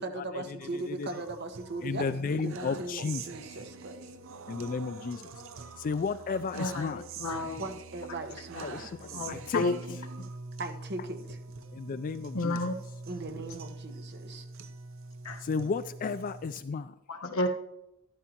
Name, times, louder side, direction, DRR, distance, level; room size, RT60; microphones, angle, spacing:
voice 1, 0.0-4.1 6.3-6.4 7.6-8.9 10.6-11.4 13.1-14.5, right 2 dB, 55° right, 5 dB, 1.2 m, -39 dB
sound 1, 0.6-16.6, right 3 dB, 70° right, 0.7 m, -45 dB
voice 2, 0.7-1.2 1.8-3.3 4.5-5.3 5.8-7.0 8.5-9.6 11.7-12.6 15.4-16.9, left 5 dB, 40° left, 13 dB, 0.3 m, -33 dB
voice 3, 6.5-7.7 9.1-10.0 12.3-12.7 15.2-15.4 17.1-17.5, left 2 dB, 80° left, 3 dB, 1.2 m, -31 dB
12.0 x 12.0 x 2.9 m, 0.87 s
head